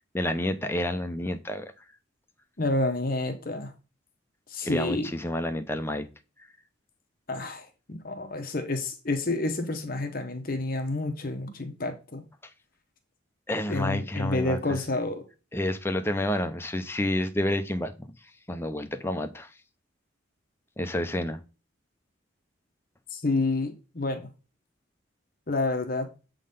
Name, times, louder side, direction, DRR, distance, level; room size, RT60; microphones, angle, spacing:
voice 1, 0.1-1.7 4.6-6.1 13.5-14.6 15.5-18.1 18.5-19.5 20.8-21.4, left 1 dB, 10° left, 0.6 m, -29 dB
voice 2, 2.6-3.7 4.5-5.1 7.3-12.2 13.7-15.2 23.1-24.3 25.5-26.1, left 2 dB, 45° left, 1.0 m, -29 dB
7.5 x 3.9 x 5.3 m
head